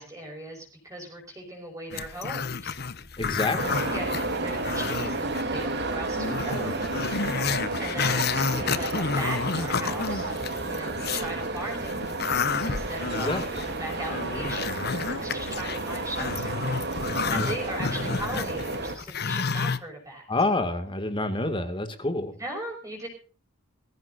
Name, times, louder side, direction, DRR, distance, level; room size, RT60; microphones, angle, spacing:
voice 1, 0.0-2.8 3.9-6.9 7.8-10.3 10.6-12.0 12.6-16.6 17.3-20.3 22.3-23.1, right 1 dB, 15° right, 0 dB, 5.6 m, -38 dB
Growling, 1.9-5.4 5.8-5.9 6.2-11.3 11.7-19.8, left 5 dB, 55° left, 1.0 m, -30 dB
voice 2, 3.2-3.8 13.1-13.4 17.3-17.5 20.3-22.3, left 2 dB, 25° left, 8 dB, 2.2 m, -28 dB
sound 1, 3.6-19.0, right 2 dB, 55° right, 3.0 m, -31 dB
22.0 x 15.0 x 2.6 m, 0.37 s
head